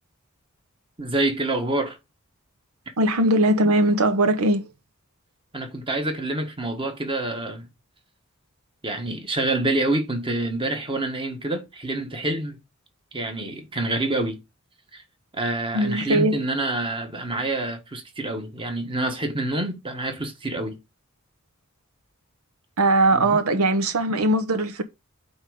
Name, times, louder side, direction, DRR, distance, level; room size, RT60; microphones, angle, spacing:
voice 1, 1.0-2.0 5.5-7.7 8.8-12.6 13.1-14.4 14.9-15.0 15.3-20.8 23.1-23.4, right 2 dB, 25° right, 1.5 m, -27 dB
voice 2, 3.0-4.7 15.7-16.3 22.8-24.8, right 1 dB, 90° right, 1.0 m, -20 dB
8.8 x 3.6 x 5.1 m
head